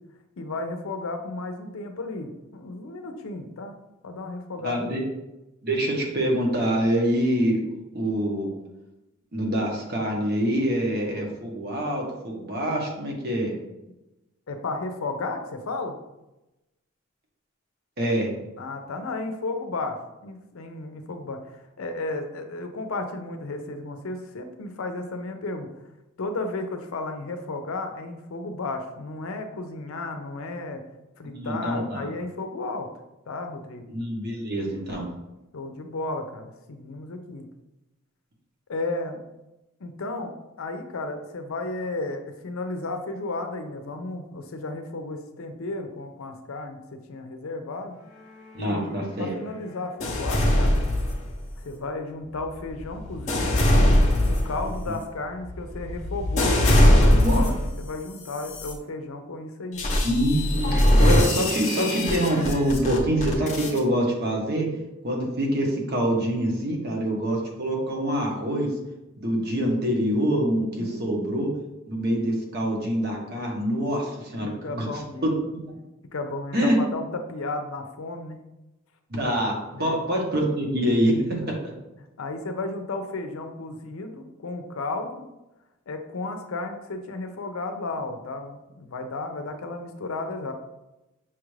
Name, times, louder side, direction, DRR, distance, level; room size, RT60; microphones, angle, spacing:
voice 1, 0.4-3.8 4.0-5.0 14.5-16.0 18.6-20.0 20.2-25.7 26.2-30.8 31.2-32.9 33.3-33.8 35.5-37.5 38.7-39.2 39.8-48.0 48.6-50.8 51.6-54.0 54.2-59.9 70.8-71.3 74.4-75.3 76.1-78.4 79.7-80.0 81.4-81.5 82.2-85.2 85.9-90.5, left 2 dB, 75° left, 6 dB, 0.5 m, -33 dB
voice 2, 4.6-5.0 5.6-7.6 7.9-8.5 9.3-13.5 18.0-18.3 31.2-32.1 33.9-35.1 48.5-49.3 54.9-55.0 57.1-57.4 60.0-64.7 65.0-68.7 69.2-71.5 71.9-74.9 75.2-75.7 76.5-76.8 79.1-81.6, equal, 50° right, 0 dB, 0.9 m, -25 dB
sound 1, 50.0-51.6 52.3-57.8 58.3-58.7 59.8-63.8, left 1 dB, 35° left, 0.7 m, -21 dB
5.7 x 2.4 x 3.2 m, 0.97 s
head